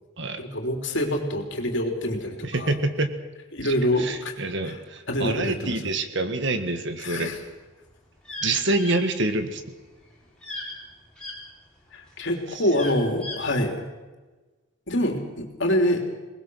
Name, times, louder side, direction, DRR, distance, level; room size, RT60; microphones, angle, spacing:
voice 1, 0.4-2.7 3.5-4.3 4.6-4.8 5.1-5.7 7.0-7.4 11.9-13.8 14.9-16.0, left 1 dB, 55° left, 3 dB, 3.3 m, -25 dB
voice 2, 2.4-3.1 3.6-7.3 8.4-9.6, right 2 dB, 55° right, 8 dB, 1.7 m, -26 dB
sound 1, 7.5-11.4 11.9-13.5, left 2 dB, 5° left, 5.1 m, -37 dB
22.0 x 20.0 x 6.4 m, 1.2 s
head